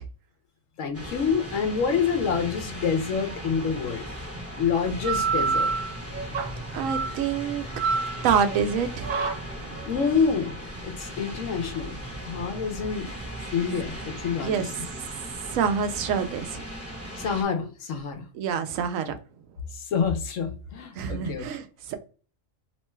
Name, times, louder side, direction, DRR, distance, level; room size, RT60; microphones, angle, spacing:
voice 1, 0.8-4.1 4.5-5.7 9.9-10.5 10.8-12.0 12.2-13.1 13.5-14.7 17.2-18.2 19.7-21.5, left 6 dB, 80° left, 1.1 m, -27 dB
sound 1, 0.9-17.4, equal, 15° right, 0.8 m, -38 dB
sound 2, 4.9-14.0, right 4 dB, 60° right, 0.5 m, -30 dB
voice 2, 6.7-7.6 8.2-9.1 14.4-14.6 15.5-16.6 18.3-19.1 20.9-22.0, right 7 dB, 90° right, 1.0 m, -26 dB
3.0 x 2.2 x 3.0 m
omnidirectional pair, 1.3 m